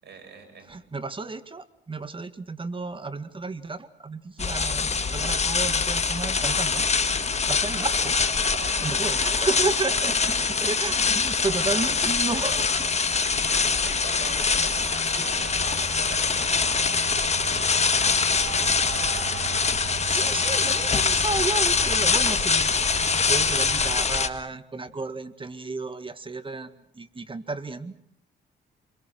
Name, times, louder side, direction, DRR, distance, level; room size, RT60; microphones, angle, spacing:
voice 1, 0.0-0.8 13.2-19.1, right 5 dB, 60° right, 4 dB, 7.9 m, -45 dB
voice 2, 0.7-6.8 7.5-8.2 8.8-10.3 10.6-12.9 13.9-14.0 20.0-22.7 23.0-27.9, right 3 dB, 25° right, 11 dB, 1.8 m, -32 dB
sound 1, 4.4-24.3, left 5 dB, 35° left, 1.7 m, -24 dB
sound 2, 4.4-24.0, right 7 dB, 90° right, 3.5 m, -39 dB
29.5 x 23.0 x 6.2 m, 0.70 s
cardioid pair, 90°, 20 cm